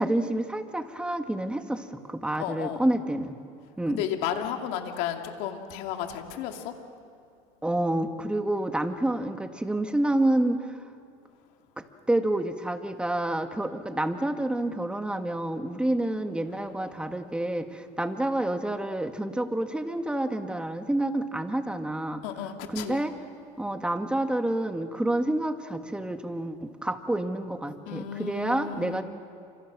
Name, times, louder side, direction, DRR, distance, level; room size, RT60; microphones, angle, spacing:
voice 1, 0.0-3.4 3.8-4.0 7.6-10.8 11.8-22.2 22.7-23.1 23.6-29.0, right 1 dB, 5° right, 6 dB, 1.8 m, -28 dB
voice 2, 2.4-2.9 3.9-6.7 16.5-16.6 22.2-23.0 27.9-29.0, left 9 dB, 85° left, 4 dB, 2.5 m, -33 dB
29.5 x 26.5 x 6.2 m, 2.5 s
supercardioid pair, 110°, 14 cm